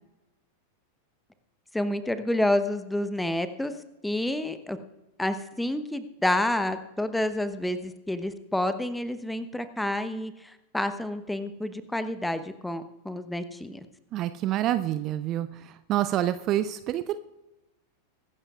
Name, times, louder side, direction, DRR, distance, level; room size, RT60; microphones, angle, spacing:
voice 1, 1.7-3.7 4.0-4.8 5.2-13.9, left 1 dB, 5° left, 11 dB, 1.0 m, -29 dB
voice 2, 14.1-17.2, right 12 dB, 35° right, 13 dB, 0.5 m, -27 dB
23.5 x 12.0 x 2.4 m, 0.98 s
figure-of-eight pair, 90°, 0 cm